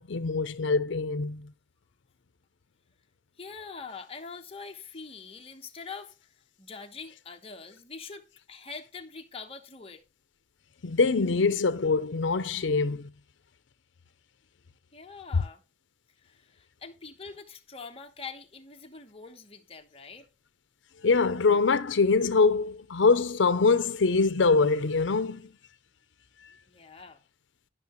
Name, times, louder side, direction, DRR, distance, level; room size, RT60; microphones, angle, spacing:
voice 1, 0.0-1.5 10.8-13.1 21.0-25.5, left 4 dB, 75° left, 0.6 m, -24 dB
voice 2, 3.4-6.3 6.6-10.0 14.9-15.6 16.2-20.3 26.7-27.2, left 5 dB, 30° left, 1.1 m, -44 dB
12.0 x 5.8 x 3.1 m
head